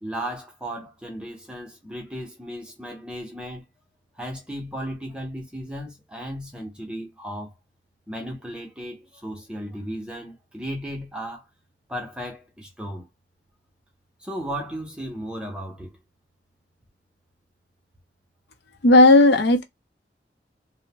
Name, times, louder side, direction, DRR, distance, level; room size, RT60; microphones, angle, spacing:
voice 1, 0.0-3.6 4.2-7.5 8.1-11.4 11.9-13.1 14.2-16.0, equal, 5° right, 0.6 m, -35 dB
voice 2, 18.8-19.6, left 2 dB, 80° left, 0.6 m, -14 dB
2.6 x 2.0 x 2.8 m
head